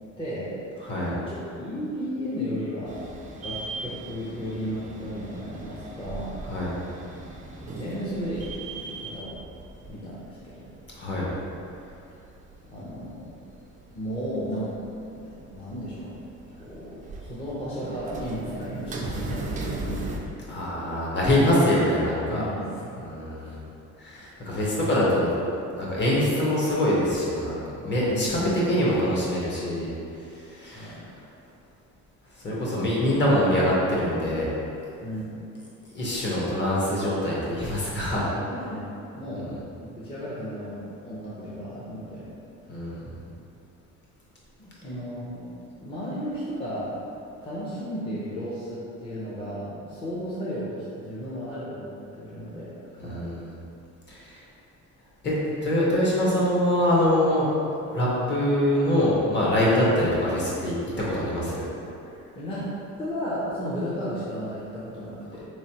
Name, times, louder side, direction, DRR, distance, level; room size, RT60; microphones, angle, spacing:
voice 1, 0.2-0.5 1.0-3.0 3.4-6.4 6.6-6.7 7.6-8.5 8.7-9.3 9.9-10.7 12.6-13.3 13.9-14.7 15.1-16.1 16.6-20.0 22.3-23.0 23.4-23.6 28.1-28.5 30.7-31.0 35.0-35.4 38.4-39.5 39.8-42.3 44.6-46.9 47.4-53.3 62.0-62.7 63.0-65.4, equal, 20° left, -10 dB, 0.6 m, -34 dB
sound 1, 2.9-20.2, right 3 dB, 25° right, 0.3 m, -38 dB
voice 2, 11.0-11.3 20.5-22.4 23.0-23.6 24.0-25.3 25.7-29.9 30.5-31.0 32.4-34.5 35.9-38.3 42.7-43.0 53.0-53.5 54.1-54.4 55.2-55.3 55.6-57.5 57.9-61.6, left 1 dB, 40° left, -6 dB, 1.0 m, -24 dB
3.8 x 3.1 x 2.8 m, 2.7 s
cardioid pair, 140°, 30 cm